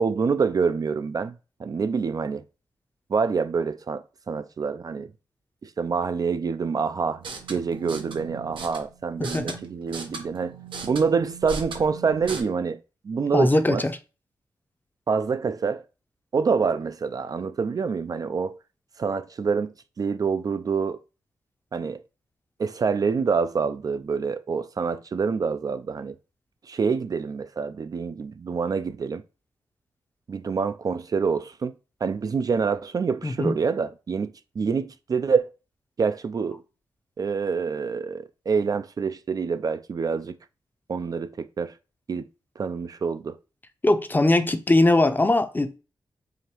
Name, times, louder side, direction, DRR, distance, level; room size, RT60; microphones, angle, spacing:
voice 1, 0.0-2.4 3.1-5.1 5.6-7.2 7.5-10.5 10.8-12.8 13.0-13.9 15.1-15.8 16.3-18.6 19.0-21.0 21.7-22.0 22.6-26.2 26.6-29.2 30.3-31.8 32.0-35.5 36.0-36.6 37.2-40.4 40.9-41.8 42.1-42.3 42.6-43.4, right 5 dB, 50° right, 0.3 m, -26 dB
sound 1, 7.1-12.4, right 4 dB, 85° right, 0.8 m, -38 dB
voice 2, 13.3-13.9 33.2-33.5 43.8-45.8, left 2 dB, 25° left, 0.6 m, -20 dB
4.9 x 2.6 x 2.9 m
cardioid pair, 55°, 8 cm